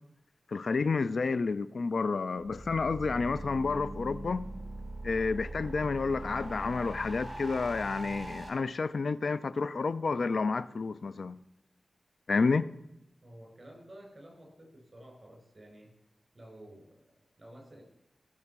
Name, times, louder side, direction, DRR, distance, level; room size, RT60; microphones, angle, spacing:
voice 1, 0.5-4.5 5.0-11.4 12.3-12.7, left 4 dB, 70° left, 0.4 m, -30 dB
sound 1, 2.4-8.5, right 1 dB, 20° right, 3.3 m, -41 dB
voice 2, 13.2-15.9 16.3-17.8, right 1 dB, 40° right, 6.4 m, -52 dB
17.0 x 6.6 x 6.0 m
cardioid pair, 55°, 0 cm